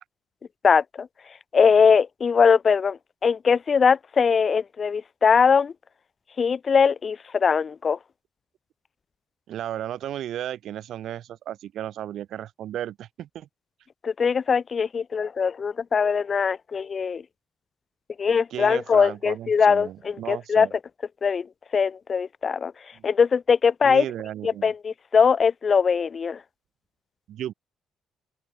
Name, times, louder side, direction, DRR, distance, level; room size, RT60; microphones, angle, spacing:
voice 1, 0.6-1.1 1.5-5.7 6.4-8.0 14.0-17.2 18.2-20.7 21.2-21.5 21.7-22.7 23.0-24.0 24.4-26.4, left 6 dB, 45° left, 0.3 m, -21 dB
voice 2, 9.5-13.5 18.5-20.7 22.9-23.0 23.8-24.7 27.3-27.5, right 11 dB, 75° right, 1.2 m, -34 dB
open air
cardioid pair, 90°, 0 cm